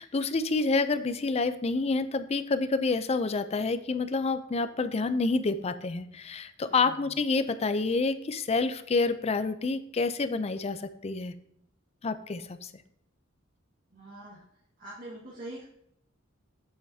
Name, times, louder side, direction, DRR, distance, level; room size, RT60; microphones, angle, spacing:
voice 1, 0.0-11.3 12.0-12.7, left 3 dB, 30° left, 12 dB, 0.5 m, -28 dB
voice 2, 6.7-7.1 13.9-14.4 14.8-15.6, right 1 dB, 50° right, -6 dB, 1.6 m, -44 dB
7.9 x 7.8 x 2.8 m, 0.75 s
head